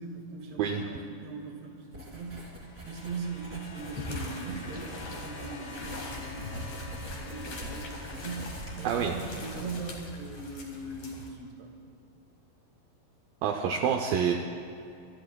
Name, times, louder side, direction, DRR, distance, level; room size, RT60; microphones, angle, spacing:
voice 1, 0.0-2.5 2.8-11.7, right 4 dB, 55° right, 1 dB, 2.5 m, -40 dB
Writing, 1.9-10.1, right 1 dB, 25° right, 2.3 m, -44 dB
sound 1, 2.1-9.8 10.9-11.0, left 4 dB, 75° left, 3.3 m, -49 dB
sound 2, 3.8-11.3, left 1 dB, 50° left, 2.3 m, -42 dB
voice 2, 13.4-14.3, right 7 dB, 80° right, 2 dB, 2.1 m, -27 dB
26.0 x 13.5 x 2.3 m, 2.7 s
omnidirectional pair, 4.8 m